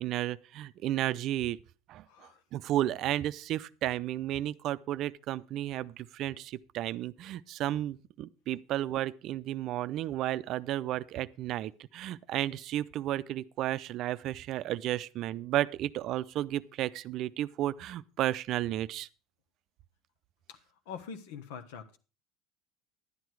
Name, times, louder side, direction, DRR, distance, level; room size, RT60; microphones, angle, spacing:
voice 1, 0.0-1.6 1.9-2.0 2.5-19.1, right 13 dB, 55° right, 0.5 m, -33 dB
voice 2, 2.1-2.4 20.5-20.6 20.9-22.0, left 6 dB, 80° left, 1.3 m, -44 dB
11.0 x 9.4 x 4.6 m
supercardioid pair, 110°, 0 cm